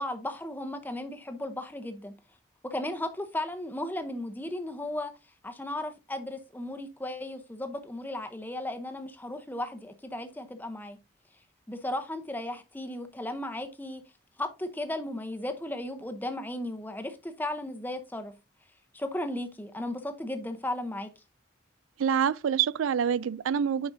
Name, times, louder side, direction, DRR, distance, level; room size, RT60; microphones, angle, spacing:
voice 1, 0.0-2.1 2.6-5.1 5.4-11.0 11.7-14.0 14.4-18.3 18.9-21.1, left 1 dB, 10° left, 0.7 m, -35 dB
voice 2, 22.0-23.9, right 8 dB, 85° right, 0.4 m, -26 dB
9.3 x 5.1 x 2.6 m
head